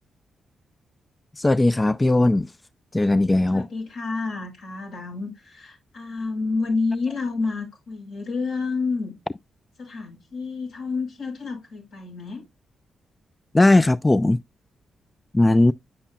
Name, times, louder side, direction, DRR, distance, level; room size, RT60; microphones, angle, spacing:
voice 1, 1.4-2.5 2.9-3.7 13.5-14.4 15.3-15.7, left 2 dB, 20° left, 0.4 m, -18 dB
voice 2, 3.5-9.2 9.8-12.4, left 4 dB, 75° left, 5.9 m, -29 dB
9.0 x 7.0 x 2.3 m
supercardioid pair, 50°, 0 cm